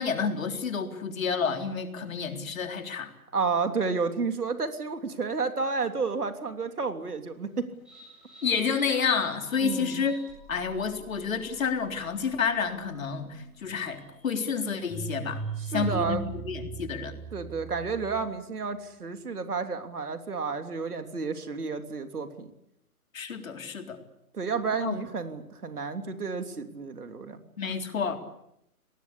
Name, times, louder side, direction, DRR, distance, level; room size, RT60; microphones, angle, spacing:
voice 1, 0.0-3.1 8.4-10.2 10.5-15.4 15.7-17.1 23.1-24.0 24.8-24.9 27.6-28.2, left 6 dB, 60° left, 5 dB, 3.9 m, -29 dB
voice 2, 3.3-7.7 9.6-10.0 15.6-16.2 17.3-22.5 24.3-27.4, right 4 dB, 85° right, 7 dB, 3.3 m, -31 dB
sound 1, 7.8-18.4, right 5 dB, ahead, 8.0 m, -42 dB
29.5 x 19.5 x 8.6 m, 0.80 s
hypercardioid pair, 150°, 44 cm